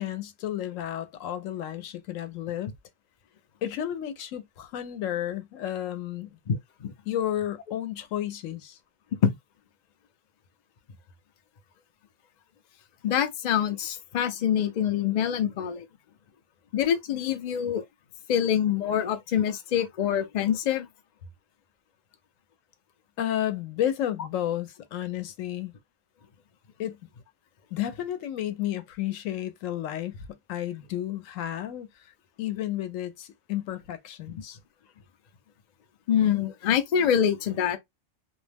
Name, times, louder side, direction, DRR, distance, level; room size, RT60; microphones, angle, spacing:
voice 1, 0.0-2.7 3.6-6.3 7.1-8.8 23.2-25.7 26.8-27.0 27.7-30.2 30.5-31.9 32.4-34.6, left 11 dB, 80° left, 1.0 m, -32 dB
voice 2, 6.5-6.9 9.2-9.3 13.0-15.9 16.7-17.8 18.3-20.9 36.1-37.8, left 9 dB, 60° left, 0.4 m, -25 dB
2.4 x 2.1 x 3.3 m
omnidirectional pair, 1.3 m